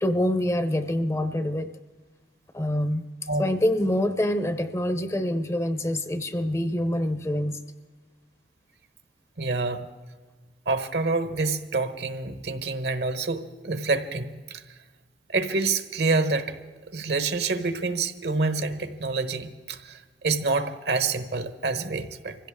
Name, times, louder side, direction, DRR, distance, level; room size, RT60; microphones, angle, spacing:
voice 1, 0.0-1.7 2.5-3.0 3.4-7.6, left 1 dB, 15° left, 0.6 m, -25 dB
voice 2, 9.4-9.8 10.7-14.6 15.3-16.6 16.9-22.4, right 3 dB, 70° right, 1.1 m, -27 dB
25.0 x 16.0 x 3.6 m
head